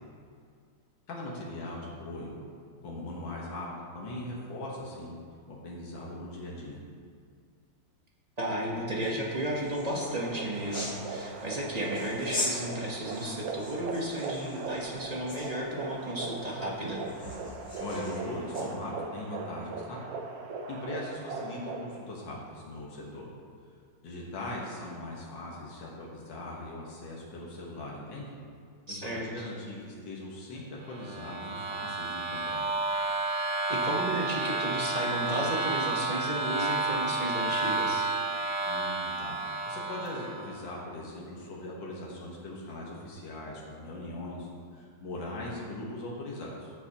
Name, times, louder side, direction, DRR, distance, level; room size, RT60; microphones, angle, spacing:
voice 1, 1.1-2.4 2.8-3.7 3.9-5.2 5.5-6.8 17.8-20.0 20.7-23.3 24.0-28.3 28.9-32.6 38.6-46.7, left 1 dB, 80° left, -4 dB, 2.1 m, -40 dB
voice 2, 8.4-17.0 28.9-29.4 33.7-38.1, right 1 dB, 25° right, -2 dB, 1.0 m, -33 dB
sound 1, 9.0-18.7, left 2 dB, 35° left, 1.8 m, -42 dB
sound 2, 9.8-22.0, right 4 dB, 65° right, 1.1 m, -39 dB
sound 3, 30.9-40.5, right 3 dB, 85° right, 1.8 m, -31 dB
14.0 x 7.0 x 2.9 m, 2.2 s
omnidirectional pair, 2.0 m